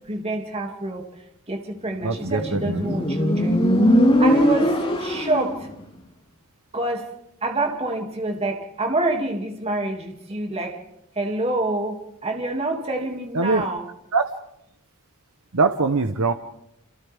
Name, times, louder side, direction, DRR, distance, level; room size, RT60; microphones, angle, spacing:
voice 1, 0.1-1.0 1.5-3.6 4.2-5.7 6.7-7.1 7.4-10.8 11.2-13.9, right 2 dB, 30° right, 2 dB, 2.6 m, -27 dB
voice 2, 2.0-2.8 13.3-13.6 14.1-14.3 15.5-16.3, right 4 dB, 70° right, 7 dB, 1.0 m, -22 dB
Motorcycle, 2.1-5.6, equal, 25° left, 4.0 m, -20 dB
28.5 x 28.0 x 3.6 m, 0.82 s
head